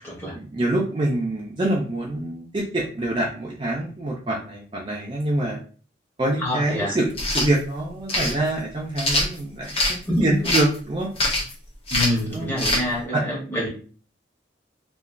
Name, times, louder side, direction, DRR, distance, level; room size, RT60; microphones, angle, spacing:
voice 1, 0.3-5.6 6.2-11.1 12.3-12.5 13.1-13.2, right 1 dB, 25° right, -2 dB, 0.4 m, -25 dB
voice 2, 6.4-7.0 10.1-10.4 11.9-13.7, left 1 dB, 10° left, -4 dB, 0.9 m, -26 dB
sound 1, 7.1-7.5 8.1-8.3 9.0-10.0 10.4-10.8 11.2-11.5 11.9-12.2 12.6-12.8, left 1 dB, 30° left, 0.5 m, -23 dB
2.9 x 2.2 x 2.4 m, 0.40 s
head